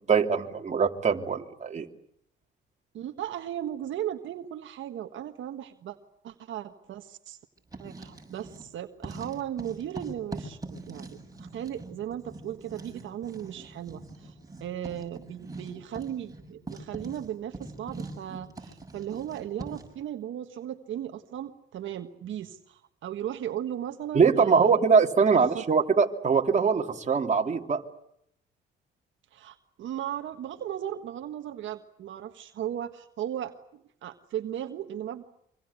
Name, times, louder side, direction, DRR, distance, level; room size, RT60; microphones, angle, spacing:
voice 1, 0.1-1.9 24.1-27.8, right 5 dB, 35° right, 3 dB, 2.9 m, -22 dB
voice 2, 2.9-6.0 6.2-7.4 7.8-14.3 14.6-24.8 25.3-25.6 29.3-35.2, right 11 dB, 75° right, 6 dB, 1.5 m, -36 dB
Writing, 7.6-8.7 9.0-20.0, right 2 dB, 15° right, 7.1 m, -43 dB
25.0 x 25.0 x 8.3 m, 0.74 s
cardioid pair, 90°, 20 cm